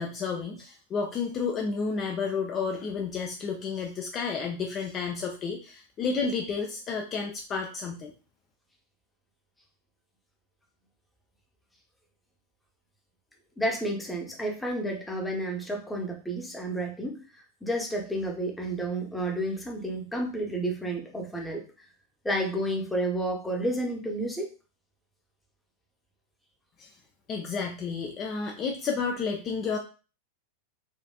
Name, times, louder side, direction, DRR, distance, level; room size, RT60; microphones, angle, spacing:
voice 1, 0.0-8.1 26.8-26.9 27.3-29.8, left 5 dB, 30° left, 1 dB, 0.5 m, -31 dB
voice 2, 13.6-21.6 22.2-24.5, right 1 dB, 5° left, 1 dB, 0.9 m, -31 dB
4.4 x 2.5 x 2.3 m, 0.35 s
figure-of-eight pair, 90°, 0 cm